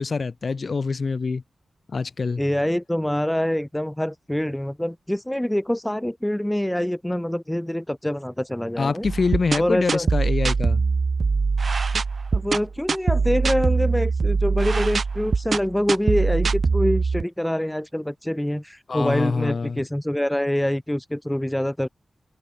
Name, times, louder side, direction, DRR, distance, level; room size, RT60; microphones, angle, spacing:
voice 1, 0.0-1.4 1.9-2.4 8.8-10.8 18.9-19.8, left 4 dB, 55° left, 2.2 m, -25 dB
voice 2, 2.4-9.1 9.6-10.1 12.3-21.9, left 1 dB, 10° left, 1.0 m, -25 dB
sound 1, 9.0-17.2, right 4 dB, 60° right, 0.7 m, -22 dB
cardioid pair, 60°, 0 cm